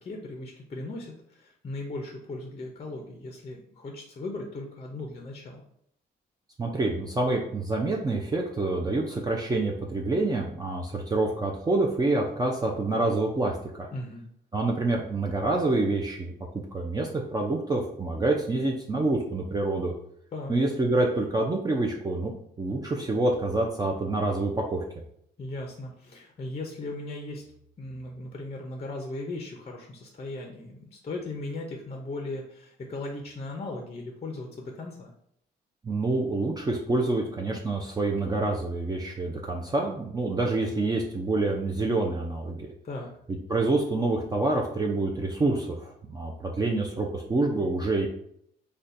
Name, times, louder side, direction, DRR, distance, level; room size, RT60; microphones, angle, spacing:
voice 1, 0.0-5.6 13.9-14.2 20.3-20.5 25.4-27.4 27.8-35.1 42.8-43.1, left 2 dB, 30° left, 1 dB, 0.5 m, -37 dB
voice 2, 6.6-13.9 14.5-16.3 16.7-19.9 20.5-22.3 22.6-24.8 35.8-42.7 43.5-48.1, right 2 dB, 20° right, -1 dB, 0.4 m, -27 dB
3.9 x 2.2 x 2.5 m, 0.70 s
cardioid pair, 90°, 20 cm